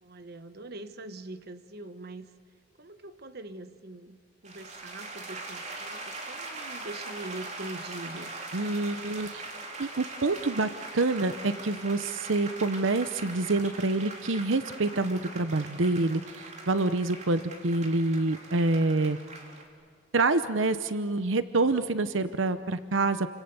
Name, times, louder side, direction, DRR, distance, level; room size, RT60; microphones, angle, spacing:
voice 1, 0.0-2.3 2.8-4.2 4.4-8.4, right 2 dB, 55° right, 10 dB, 1.2 m, -43 dB
sound 1, 4.5-19.7, right 2 dB, 40° right, 3.5 m, -41 dB
voice 2, 8.5-9.4 9.8-19.2 20.1-23.3, right 2 dB, 90° right, 12 dB, 0.9 m, -27 dB
29.0 x 26.0 x 7.0 m, 2.1 s
head